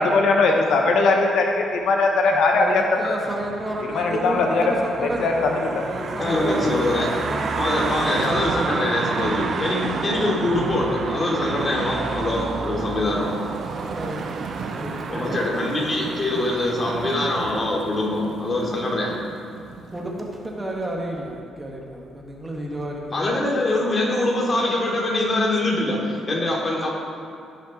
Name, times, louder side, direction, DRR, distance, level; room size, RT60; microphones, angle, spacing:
voice 1, 0.0-3.2 3.9-4.6 5.2-5.8, left 3 dB, 75° left, 2 dB, 1.0 m, -20 dB
voice 2, 2.5-7.7 8.6-9.1 9.4-9.8 13.7-16.2 19.9-23.2, right 1 dB, 20° right, -1 dB, 1.8 m, -32 dB
sound 1, 3.2-17.2, right 4 dB, 50° right, 0.7 m, -31 dB
sound 2, 5.8-20.3 20.7-20.8, right 5 dB, 85° right, 0.8 m, -36 dB
voice 3, 6.2-7.1 7.6-13.4 15.1-19.2 23.1-26.9, left 1 dB, 35° left, -3 dB, 2.8 m, -23 dB
16.0 x 5.7 x 4.4 m, 2.5 s
cardioid pair, 90°, 0 cm